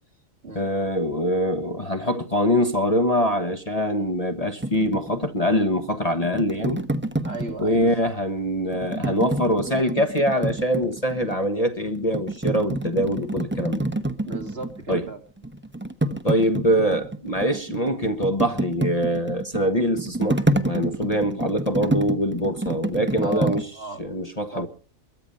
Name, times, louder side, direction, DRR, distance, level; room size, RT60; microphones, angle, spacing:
voice 1, 0.5-6.8 7.6-13.8 14.9-15.1 16.2-23.7 24.0-24.7, equal, 30° left, 1.3 m, -24 dB
sound 1, 4.6-8.1 8.7-11.5 11.9-15.1 15.4-23.6, right 1 dB, 10° right, 1.0 m, -28 dB
voice 2, 7.2-7.9 14.3-15.2 23.2-24.0 24.5-24.7, right 3 dB, 50° right, 3.2 m, -35 dB
22.5 x 11.0 x 5.5 m
omnidirectional pair, 1.4 m